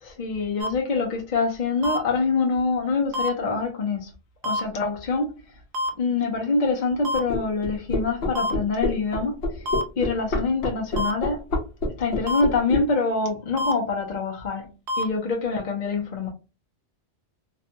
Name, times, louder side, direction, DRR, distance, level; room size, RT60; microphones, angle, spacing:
voice 1, 0.0-4.1 4.4-5.3 6.0-9.7 10.0-11.4 12.0-14.7 15.0-16.3, left 4 dB, 50° left, 0.7 m, -25 dB
sound 1, 0.6-0.7 1.8-2.0 3.1-3.3 4.4-4.6 5.7-5.9 7.0-7.2 8.3-8.5 9.7-9.8 11.0-11.1 12.3-12.4 13.6-13.7 14.9-15.0, left 1 dB, 70° right, 0.8 m, -26 dB
sound 2, 7.3-12.8, left 2 dB, 75° left, 1.0 m, -26 dB
2.5 x 2.2 x 2.7 m
omnidirectional pair, 1.1 m